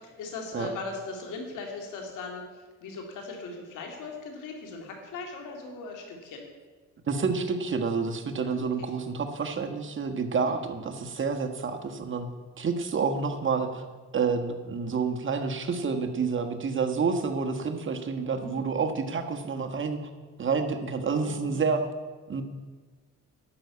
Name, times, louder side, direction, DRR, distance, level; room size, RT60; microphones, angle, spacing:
voice 1, 0.0-2.5 2.8-6.5 8.4-8.6 10.4-10.6 18.4-18.6 21.1-21.6, left 3 dB, 90° left, 2 dB, 2.5 m, -39 dB
voice 2, 7.1-12.3 12.6-13.8 14.1-20.0 20.4-21.8 22.3-22.4, right 5 dB, 40° right, 5 dB, 1.4 m, -29 dB
11.5 x 6.3 x 8.3 m, 1.4 s
cardioid pair, 90°, 30 cm